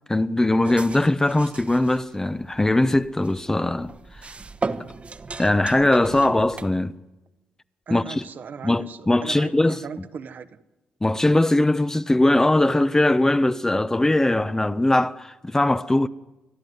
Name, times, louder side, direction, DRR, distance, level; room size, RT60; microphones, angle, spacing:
voice 1, 0.1-3.9 5.4-6.9 7.9-8.2 8.6-9.8 11.0-16.1, left 1 dB, 15° left, 0.9 m, -20 dB
sound 1, 0.6-6.7, right 4 dB, 35° right, 1.2 m, -36 dB
voice 2, 7.9-10.6, right 6 dB, 60° right, 1.3 m, -38 dB
29.0 x 12.0 x 9.5 m
supercardioid pair, 60°, 4 cm